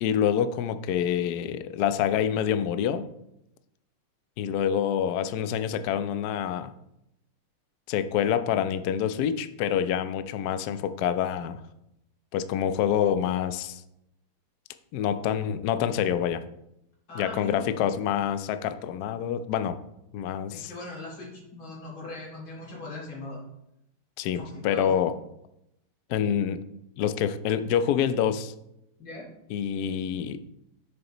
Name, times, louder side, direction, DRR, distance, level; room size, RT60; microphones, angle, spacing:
voice 1, 0.0-3.1 4.4-6.7 7.9-11.6 12.3-13.8 14.9-16.4 17.1-19.8 20.1-20.7 24.2-25.1 26.1-26.6 27.0-28.5 29.5-30.4, left 9 dB, 90° left, 10 dB, 0.8 m, -27 dB
voice 2, 17.1-17.7 20.5-23.4 24.3-24.9 29.0-29.3, left 2 dB, 70° left, -3 dB, 3.3 m, -40 dB
11.0 x 6.6 x 3.0 m, 0.83 s
omnidirectional pair, 2.3 m